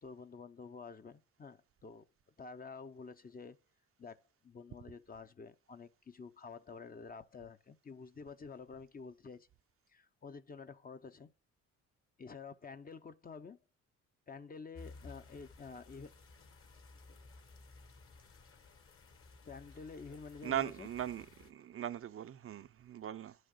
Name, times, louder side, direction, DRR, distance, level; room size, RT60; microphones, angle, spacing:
voice 1, 0.0-2.1 2.4-3.6 4.0-9.5 9.9-11.3 12.2-13.6 14.3-16.1 19.4-20.9, left 5 dB, 30° left, 0.7 m, -49 dB
sound 1, 14.7-21.5, left 3 dB, 45° left, 1.5 m, -56 dB
voice 2, 20.4-23.4, right 10 dB, 45° right, 0.5 m, -39 dB
11.0 x 6.3 x 6.7 m
cardioid pair, 90°, 30 cm